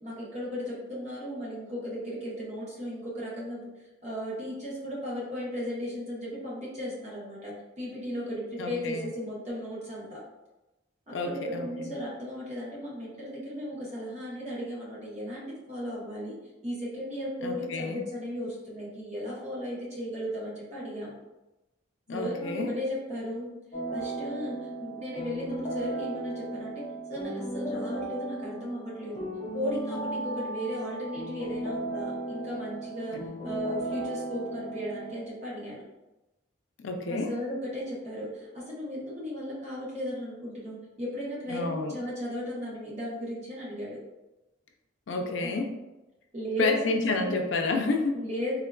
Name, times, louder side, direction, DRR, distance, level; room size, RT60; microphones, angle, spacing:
voice 1, 0.0-3.6 4.0-10.2 11.1-16.4 16.6-21.2 22.1-23.5 23.9-35.8 37.1-44.0 45.1-45.6 46.3-47.3 48.1-48.5, equal, 35° right, -6 dB, 0.9 m, -36 dB
voice 2, 8.6-9.1 11.1-11.9 17.4-18.0 22.1-22.7 33.1-33.3 36.8-37.3 41.5-42.0 45.1-45.7 46.6-48.2, left 3 dB, 75° left, 3 dB, 0.4 m, -30 dB
sound 1, 23.7-35.3, right 1 dB, 25° left, 0.6 m, -36 dB
3.6 x 2.3 x 2.2 m, 1.0 s
head